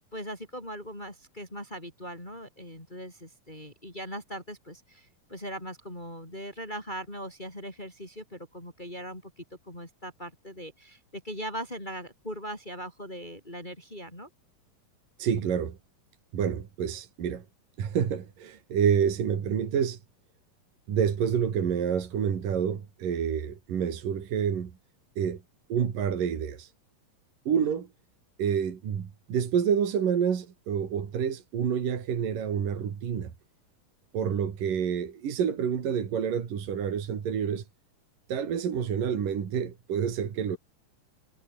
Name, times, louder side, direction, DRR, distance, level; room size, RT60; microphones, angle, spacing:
voice 1, 0.0-14.3 27.6-27.7, equal, 10° left, 7.0 m, -40 dB
voice 2, 15.2-15.8 16.3-17.5 17.8-20.0 20.9-24.8 25.2-25.4 25.7-26.7 27.5-27.9 28.4-33.3 34.1-37.6 38.3-40.6, right 7 dB, 70° right, 4.4 m, -28 dB
omnidirectional pair, 4.0 m